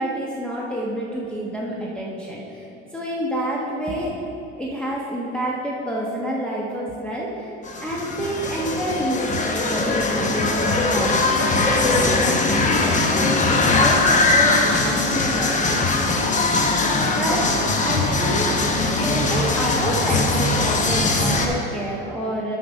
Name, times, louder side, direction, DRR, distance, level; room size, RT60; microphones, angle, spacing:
voice 1, 0.0-2.6 2.9-4.1 4.6-7.5 7.8-16.2 17.1-17.5 17.8-18.6 19.0-22.6, right 1 dB, 5° left, -5 dB, 1.0 m, -28 dB
sound 1, 7.6-21.5, left 3 dB, 25° left, 0.9 m, -20 dB
8.7 x 5.8 x 5.3 m, 2.8 s
supercardioid pair, 110°, 30 cm